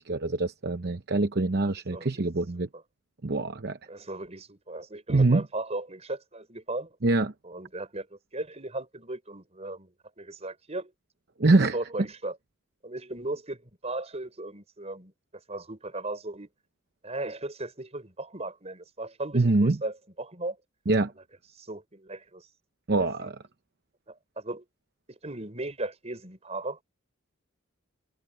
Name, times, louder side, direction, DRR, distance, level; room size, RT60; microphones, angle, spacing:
voice 1, 0.0-2.7 3.2-3.8 5.1-5.4 7.0-7.3 11.4-11.8 19.3-19.8 20.9-21.1 22.9-23.4, right 2 dB, 50° right, 0.8 m, -24 dB
voice 2, 1.6-2.1 3.9-7.0 7.4-10.9 11.7-12.4 12.8-15.1 15.5-16.5 17.0-20.6 21.6-22.5 23.0-23.3 24.1-24.6 25.1-26.8, right 2 dB, 30° right, 5.5 m, -37 dB
head